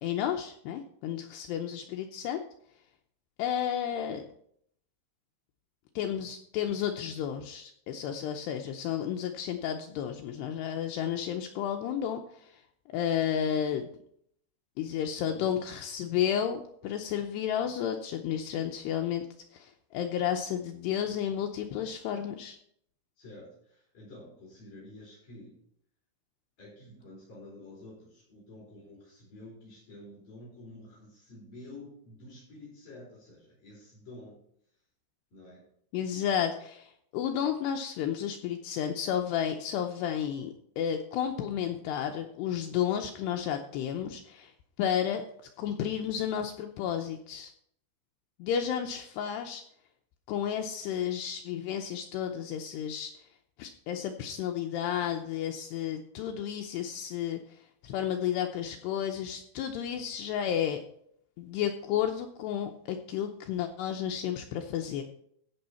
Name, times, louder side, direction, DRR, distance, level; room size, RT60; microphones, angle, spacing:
voice 1, 0.0-2.4 3.4-4.3 6.0-12.6 12.9-13.9 14.8-19.3 19.5-22.6 35.9-44.5 44.8-45.2 45.6-47.5 48.4-49.6 50.3-53.1 53.6-60.8 61.4-65.0, left 9 dB, 90° left, 4 dB, 2.4 m, -32 dB
voice 2, 15.2-15.7 23.2-25.6 26.6-34.4 35.3-35.7, left 1 dB, 45° left, -6 dB, 5.7 m, -49 dB
15.5 x 6.3 x 4.3 m, 0.66 s
omnidirectional pair, 5.7 m